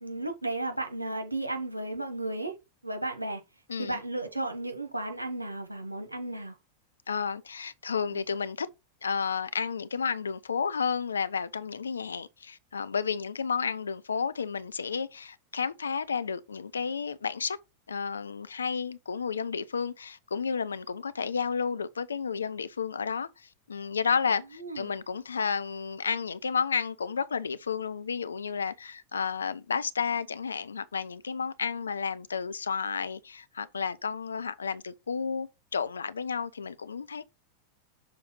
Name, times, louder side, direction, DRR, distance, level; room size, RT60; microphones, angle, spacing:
voice 1, 0.0-2.5 2.8-3.4 3.8-6.6 8.1-8.2 24.6-25.0, right 2 dB, 85° right, 1.2 m, -34 dB
voice 2, 3.7-4.0 7.1-8.7 9.0-17.6 17.9-37.2, left 6 dB, 70° left, 0.5 m, -32 dB
6.6 x 4.2 x 3.8 m
figure-of-eight pair, 90°, 0 cm